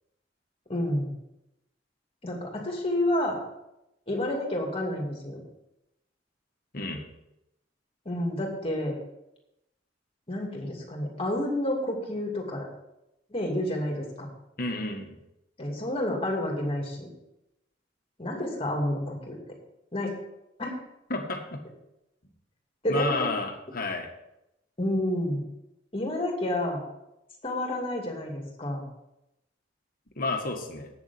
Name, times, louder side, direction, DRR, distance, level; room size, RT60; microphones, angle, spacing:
voice 1, 0.7-1.1 2.2-3.4 4.1-5.4 8.0-9.0 10.3-12.7 13.3-14.3 15.6-17.1 18.2-19.4 19.9-20.1 20.6-20.7 22.8-23.3 24.8-25.4 25.9-26.8 27.4-28.8, left 1 dB, 30° left, 0 dB, 2.6 m, -29 dB
voice 2, 14.6-15.2 21.1-21.6 22.9-24.1 30.2-30.9, left 2 dB, 50° left, 3 dB, 1.7 m, -31 dB
8.7 x 7.3 x 7.1 m, 0.88 s
head